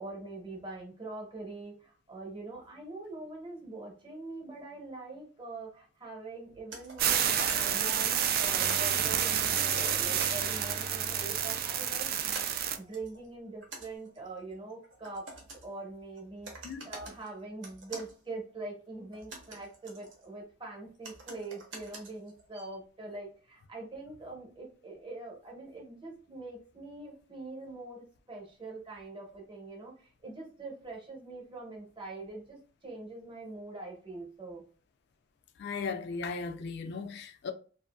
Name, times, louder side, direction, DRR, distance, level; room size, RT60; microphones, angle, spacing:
voice 1, 0.0-12.4 12.7-15.3 15.6-34.6, right 2 dB, 25° right, 0.9 m, -43 dB
sound 1, 6.7-8.9 9.5-11.1 11.6-11.9 12.3-15.9 16.2-16.3 16.4-17.3 17.6-18.1 19.0-20.4 21.0-22.8, right 2 dB, 75° right, 0.9 m, -46 dB
sound 2, 7.0-12.8, right 9 dB, 50° right, 0.3 m, -29 dB
Bowed string instrument, 8.4-12.6, right 1 dB, 5° left, 0.5 m, -45 dB
voice 2, 35.6-37.5, left 4 dB, 60° left, 0.3 m, -36 dB
2.6 x 2.5 x 2.2 m
head